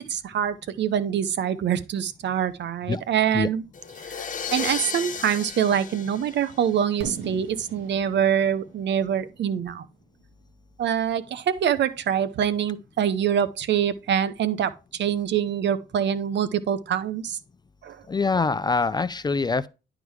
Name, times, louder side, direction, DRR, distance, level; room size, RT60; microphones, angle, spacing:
voice 1, 0.1-3.6 4.1-9.8 10.8-17.4 17.8-18.0, right 9 dB, 65° right, 0.8 m, -25 dB
sound 1, 3.7-7.0, left 7 dB, 40° left, 0.8 m, -34 dB
Fireworks, 7.0-10.9, right 5 dB, 85° right, 1.8 m, -41 dB
voice 2, 18.1-19.7, left 4 dB, 20° left, 0.4 m, -24 dB
10.5 x 3.8 x 4.7 m
cardioid pair, 90°, 20 cm